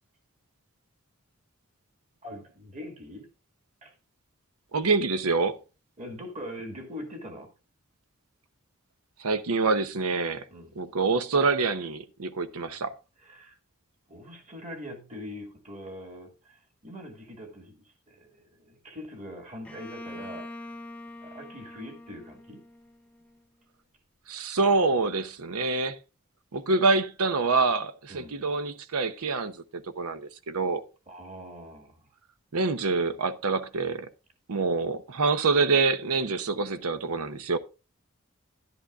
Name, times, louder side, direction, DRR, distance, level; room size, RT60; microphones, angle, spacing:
voice 1, 2.2-3.3 3.8-3.9 6.0-7.5 10.5-10.8 13.2-13.6 14.1-20.5 21.2-22.6 28.1-28.4 31.1-32.1, equal, 30° right, 1.8 m, -42 dB
voice 2, 4.7-5.6 9.2-10.4 10.8-12.9 24.3-26.0 26.5-30.8 32.5-34.1 34.5-37.6, right 4 dB, 90° right, 0.8 m, -26 dB
Bowed string instrument, 19.7-23.4, left 2 dB, 5° left, 0.7 m, -44 dB
11.5 x 11.0 x 2.4 m
head